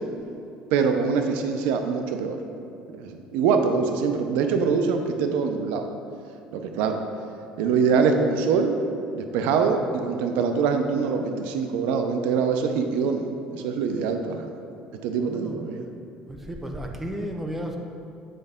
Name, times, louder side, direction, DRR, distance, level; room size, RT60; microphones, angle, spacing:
voice 1, 0.7-2.4 2.9-5.9 6.5-7.0 7.6-8.8 9.1-14.5 15.0-15.8, right 5 dB, 90° right, 6 dB, 0.5 m, -24 dB
voice 2, 15.1-15.6 16.3-17.8, equal, 10° right, 2 dB, 0.5 m, -33 dB
7.8 x 5.2 x 3.6 m, 2.7 s
cardioid pair, 170°, 3 cm